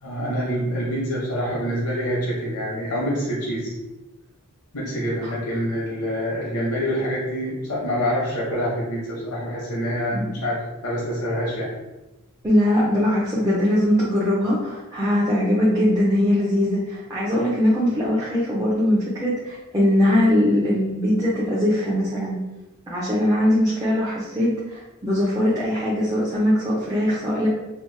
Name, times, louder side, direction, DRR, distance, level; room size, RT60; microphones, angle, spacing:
voice 1, 0.0-3.7 4.7-11.7, equal, 75° left, -5 dB, 0.8 m, -26 dB
voice 2, 12.4-22.4 22.9-27.5, left 1 dB, 15° right, -8 dB, 0.5 m, -21 dB
2.9 x 2.0 x 3.2 m, 1.1 s
head